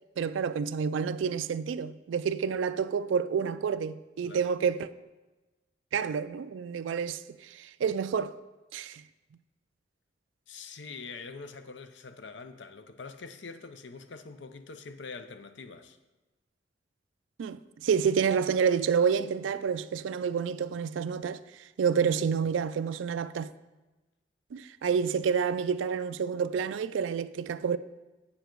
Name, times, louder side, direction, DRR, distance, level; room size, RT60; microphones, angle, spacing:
voice 1, 0.2-4.9 5.9-8.3 8.7-9.0 17.4-21.4 21.8-23.5 24.5-27.8, right 6 dB, 90° right, 0.4 m, -29 dB
voice 2, 4.2-4.5 10.5-16.0, left 4 dB, 75° left, 0.6 m, -44 dB
8.5 x 7.1 x 4.5 m
head